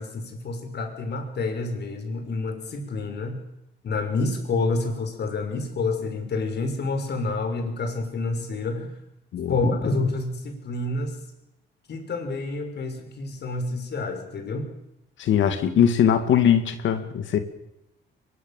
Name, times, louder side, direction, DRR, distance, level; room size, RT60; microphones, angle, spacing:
voice 1, 0.0-3.4 3.8-8.9 9.5-11.2 11.9-14.7, left 3 dB, 55° left, 5 dB, 6.3 m, -28 dB
voice 2, 15.2-17.4, left 9 dB, 75° left, 8 dB, 2.6 m, -21 dB
23.0 x 22.5 x 7.6 m, 0.86 s
cardioid pair, 90°, 20 cm